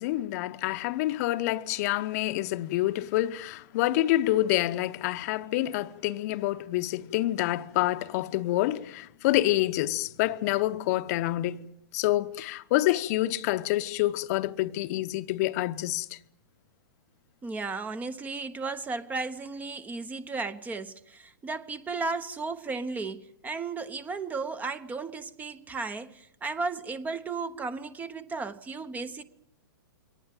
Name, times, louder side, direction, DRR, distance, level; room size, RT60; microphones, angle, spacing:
voice 1, 0.0-11.6 11.9-16.2, left 16 dB, 45° left, 0.9 m, -27 dB
voice 2, 17.4-29.2, right 4 dB, 15° right, 1.0 m, -34 dB
23.5 x 19.0 x 9.1 m
hypercardioid pair, 115°, 12 cm